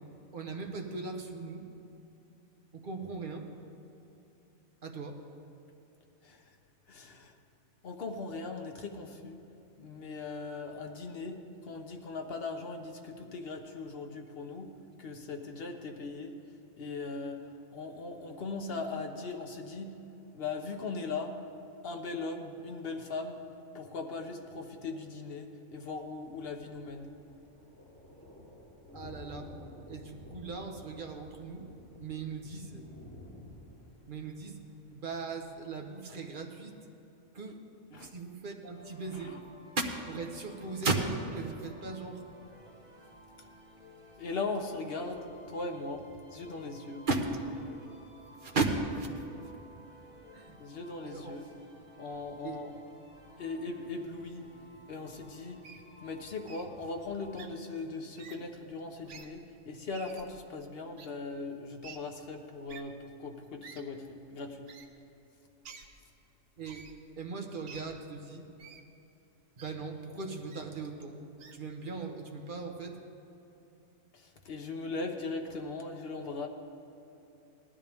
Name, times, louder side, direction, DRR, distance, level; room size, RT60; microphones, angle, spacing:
voice 1, 0.3-1.6 2.7-3.5 4.8-5.2 28.9-29.5 29.9-31.6 32.0-32.8 34.1-34.6 34.9-36.7 37.3-37.6 37.9-39.4 39.8-42.2 47.1-47.4 48.4-49.1 49.4-49.5 50.3-50.6 51.0-51.4 52.4-52.6 66.6-66.9 67.2-68.4 69.6-71.2 71.5-73.0, right 3 dB, 45° right, 2 dB, 1.3 m, -37 dB
voice 2, 6.9-7.3 7.8-9.4 9.8-14.7 15.0-16.3 16.8-17.5 17.7-19.9 20.3-21.3 21.8-23.4 23.7-27.1 37.9-38.1 39.2-39.4 44.2-47.1 50.6-51.5 52.0-52.7 53.4-54.4 54.9-55.6 56.0-64.7 74.1-76.5, left 3 dB, 55° left, 3 dB, 1.2 m, -39 dB
Thunder, 25.9-35.8, left 1 dB, 10° left, 3.5 m, -52 dB
sound 1, 38.7-57.5, equal, 25° right, 3.2 m, -55 dB
Wild animals, 55.6-55.8 56.5-56.7 57.3-57.5 58.2-58.4 59.0-59.3 59.9-60.3 61.0-61.1 61.8-62.0 62.7-62.8 63.6-63.8 64.7-64.9 65.6-65.9 66.6-66.9 67.7-67.8 68.6-68.8 69.6-69.7 70.5-70.6 71.4-71.6, right 6 dB, 75° right, 1.2 m, -49 dB
18.5 x 12.5 x 3.6 m, 3.0 s
omnidirectional pair, 1.3 m